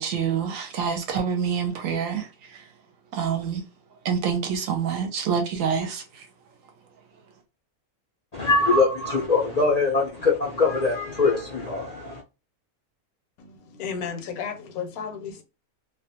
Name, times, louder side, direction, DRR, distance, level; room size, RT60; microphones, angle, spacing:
voice 1, 0.0-2.7 3.1-3.6 4.0-6.3, right 7 dB, 70° right, 0.9 m, -27 dB
voice 2, 8.3-12.2, left 3 dB, 55° left, 0.4 m, -22 dB
voice 3, 13.4-15.4, left 6 dB, 75° left, 1.0 m, -33 dB
2.4 x 2.2 x 2.7 m
omnidirectional pair, 1.6 m